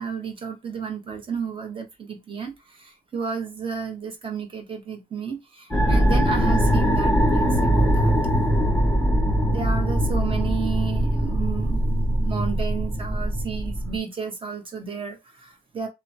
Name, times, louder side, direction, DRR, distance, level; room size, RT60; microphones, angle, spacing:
voice 1, 0.0-8.1 9.5-15.9, right 6 dB, 30° right, 1.0 m, -32 dB
sound 1, 5.7-14.0, equal, 5° left, 1.4 m, -21 dB
3.0 x 2.2 x 2.6 m
cardioid pair, 110°, 17 cm